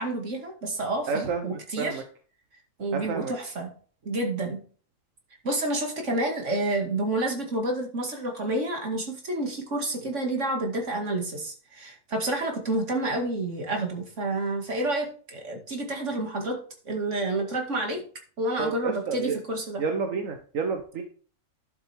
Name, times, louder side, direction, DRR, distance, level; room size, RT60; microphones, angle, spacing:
voice 1, 0.0-2.0 2.8-3.7 4.1-4.6 5.4-16.6 16.9-18.0 18.4-19.8, right 2 dB, 65° right, 2 dB, 2.5 m, -29 dB
voice 2, 1.1-2.0 2.9-3.3 10.0-10.1 18.6-19.4 19.8-21.0, right 5 dB, 80° right, 5 dB, 1.4 m, -30 dB
11.5 x 7.3 x 3.5 m, 0.42 s
omnidirectional pair, 1.3 m